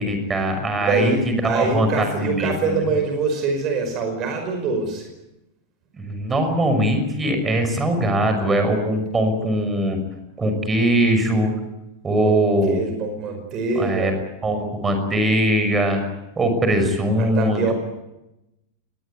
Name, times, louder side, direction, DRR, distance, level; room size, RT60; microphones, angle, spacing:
voice 1, 0.0-2.7 5.9-10.0 10.4-11.5 12.0-12.8 13.8-14.1 14.4-16.0 16.4-17.7, right 1 dB, 15° right, 7 dB, 6.0 m, -21 dB
voice 2, 0.8-5.1 12.2-14.1 17.2-17.7, right 4 dB, 35° right, 5 dB, 5.2 m, -24 dB
22.5 x 20.0 x 9.5 m, 0.92 s
figure-of-eight pair, 90°, 0 cm